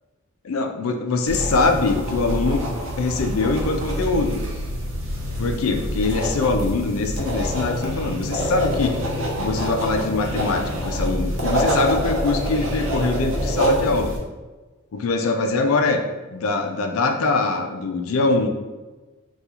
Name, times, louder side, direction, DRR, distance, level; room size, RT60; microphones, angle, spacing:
voice 1, 0.4-2.7 3.0-4.4 5.4-9.0 9.4-14.1 14.9-16.0 16.3-18.5, left 3 dB, 85° left, 5 dB, 0.4 m, -23 dB
sound 1, 1.3-14.2, equal, 65° right, 0.7 m, -26 dB
sound 2, 3.1-12.1, left 2 dB, 45° left, 0.8 m, -37 dB
3.5 x 2.3 x 2.8 m, 1.2 s
head